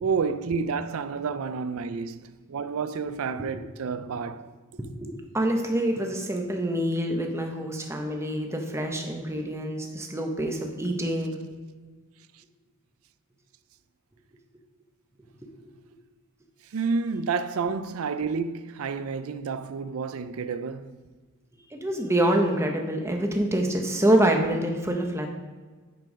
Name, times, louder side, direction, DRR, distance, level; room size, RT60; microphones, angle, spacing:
voice 1, 0.0-4.5 4.8-4.9 12.3-12.4 16.6-21.0, right 5 dB, 80° right, 0.4 m, -30 dB
voice 2, 5.0-11.3 15.5-15.7 21.7-25.3, right 1 dB, 15° right, 0.9 m, -26 dB
9.6 x 4.6 x 5.0 m
head